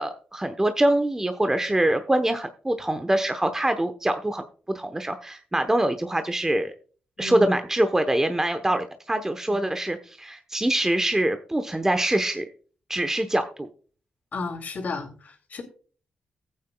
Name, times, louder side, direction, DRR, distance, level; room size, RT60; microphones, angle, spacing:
voice 1, 0.0-4.4 4.7-6.7 7.2-12.4 12.9-13.7, right 1 dB, 15° right, 7 dB, 0.9 m, -24 dB
voice 2, 7.2-7.6 8.7-8.8 9.5-9.6 14.3-15.6, left 3 dB, 60° left, 3 dB, 2.6 m, -33 dB
15.0 x 8.7 x 2.2 m, 0.40 s
cardioid pair, 60°, 3 cm